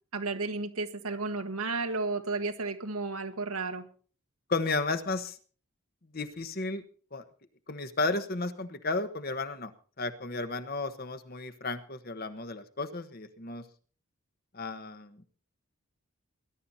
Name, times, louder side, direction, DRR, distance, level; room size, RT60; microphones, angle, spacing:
voice 1, 0.1-3.8, right 3 dB, 90° right, 7 dB, 1.8 m, -33 dB
voice 2, 4.5-5.4 6.1-6.8 7.1-7.2 7.7-9.7 10.0-13.7 14.5-15.3, left 3 dB, 45° left, 10 dB, 1.2 m, -33 dB
20.0 x 11.5 x 4.2 m, 0.41 s
head